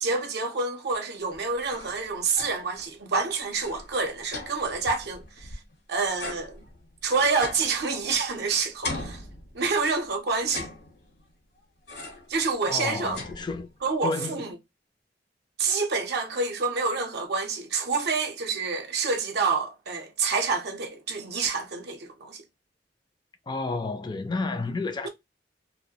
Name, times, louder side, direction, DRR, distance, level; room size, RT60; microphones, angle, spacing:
voice 1, 0.0-5.5 5.9-6.6 7.0-9.2 9.5-10.7 12.3-13.2 13.8-14.5 15.6-22.4 25.0-25.1, right 4 dB, 65° right, 0.6 m, -27 dB
sound 1, 1.3-2.8 3.1-3.2 3.5-5.7 6.2-8.4 8.8-9.9 10.4-11.3 11.9-12.4 12.7-13.9, left 2 dB, 65° left, 1.0 m, -40 dB
voice 2, 12.7-13.7 14.0-14.5 23.5-25.1, left 3 dB, 25° left, 0.4 m, -31 dB
2.3 x 2.1 x 2.7 m
head